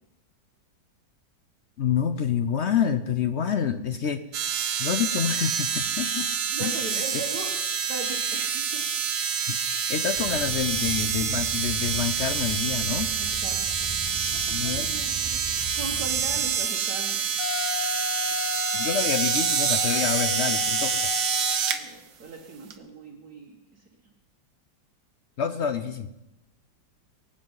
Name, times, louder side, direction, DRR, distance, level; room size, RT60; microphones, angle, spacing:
voice 1, 1.8-4.2 4.8-6.3 6.6-6.9 9.5-13.1 14.5-14.9 18.7-21.1 25.4-26.1, left 8 dB, 75° left, 10 dB, 0.6 m, -28 dB
sound 1, 4.3-21.8 22.7-22.8, right 7 dB, 80° right, 1.8 m, -27 dB
voice 2, 6.5-7.5 7.9-8.8 13.2-13.5 14.3-17.3 21.7-23.8, right 3 dB, 55° right, -1 dB, 2.2 m, -39 dB
sound 2, 10.1-16.4, right 1 dB, 20° right, 3.4 m, -39 dB
Wind instrument woodwind instrument, 17.4-21.9, left 6 dB, 55° left, 0.9 m, -32 dB
23.5 x 8.6 x 5.7 m, 0.95 s
omnidirectional pair, 2.0 m